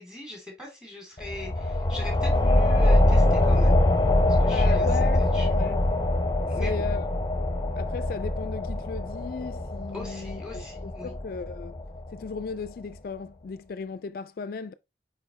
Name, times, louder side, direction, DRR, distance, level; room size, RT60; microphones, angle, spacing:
voice 1, 0.0-3.8 4.4-4.9 5.2-5.6 6.5-6.8 9.9-11.1, left 2 dB, 5° right, 2.7 m, -41 dB
sound 1, 1.2-12.4, left 1 dB, 20° left, 0.7 m, -23 dB
voice 2, 4.5-5.3 5.5-5.9 6.6-7.1 7.8-11.8 12.1-14.7, left 5 dB, 55° left, 0.3 m, -36 dB
5.6 x 4.7 x 4.0 m
head